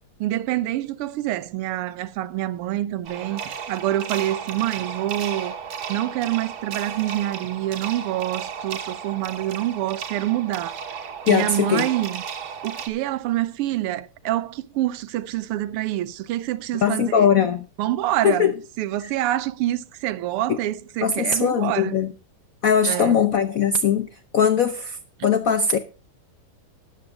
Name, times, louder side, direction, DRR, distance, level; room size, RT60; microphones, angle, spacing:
voice 1, 0.2-5.6 5.9-10.8 11.3-12.2 12.6-17.3 17.8-18.5 18.8-22.0 22.8-23.1, right 14 dB, 85° right, 1.6 m, -26 dB
sound 1, 3.0-12.9, right 7 dB, 65° right, 2.1 m, -34 dB
voice 2, 11.3-11.9 16.8-17.7 18.2-18.6 19.0-19.1 20.5-20.6 21.0-22.1 22.6-25.8, left 7 dB, 75° left, 0.8 m, -20 dB
13.0 x 9.3 x 3.8 m
omnidirectional pair, 2.4 m